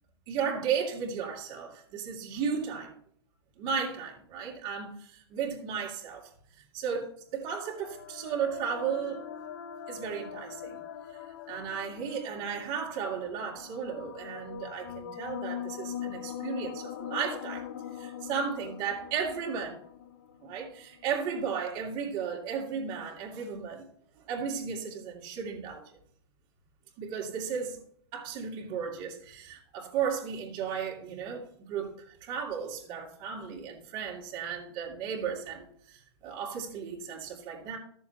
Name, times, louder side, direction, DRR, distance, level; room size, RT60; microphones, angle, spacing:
voice 1, 0.3-2.9 3.6-9.2 9.9-10.8 11.5-17.7 17.9-19.8 20.4-23.9 24.2-25.8 27.0-27.8 28.1-37.8, right 6 dB, 35° right, -1 dB, 2.8 m, -35 dB
sound 1, 7.4-21.1, left 9 dB, 55° left, 1.1 m, -42 dB
14.0 x 7.1 x 2.9 m, 0.62 s
hypercardioid pair, 150°, 14 cm